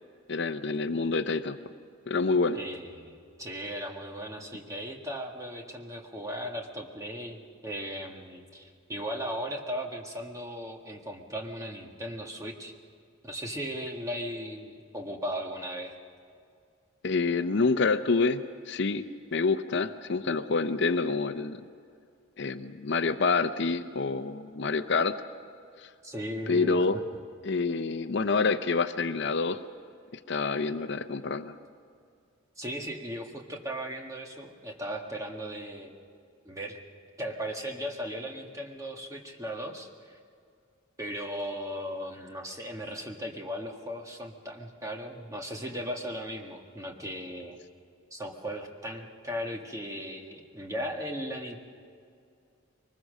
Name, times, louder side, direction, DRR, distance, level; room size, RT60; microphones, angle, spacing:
voice 1, 0.3-1.6 2.1-2.6 17.0-21.6 22.4-25.2 25.8-25.9 26.5-27.0 27.4-29.6 30.1-31.6, left 4 dB, 55° left, 10 dB, 0.6 m, -27 dB
voice 2, 2.5-12.7 13.2-16.0 26.0-26.9 32.6-35.9 36.5-36.8 37.2-40.2 41.0-47.6 48.1-51.6, equal, 15° right, 1 dB, 1.7 m, -37 dB
23.5 x 20.5 x 6.5 m, 2.3 s
head